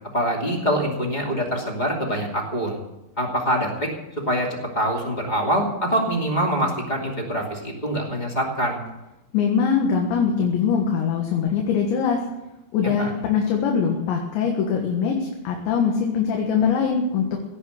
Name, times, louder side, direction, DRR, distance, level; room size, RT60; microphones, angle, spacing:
voice 1, 0.1-2.8 3.2-3.9 4.2-4.5 4.7-8.8 13.0-13.1, equal, 20° left, 0 dB, 1.1 m, -24 dB
voice 2, 9.3-12.2 12.7-17.4, left 6 dB, 75° left, 1 dB, 3.7 m, -22 dB
17.5 x 8.4 x 8.0 m, 0.95 s
omnidirectional pair, 5.4 m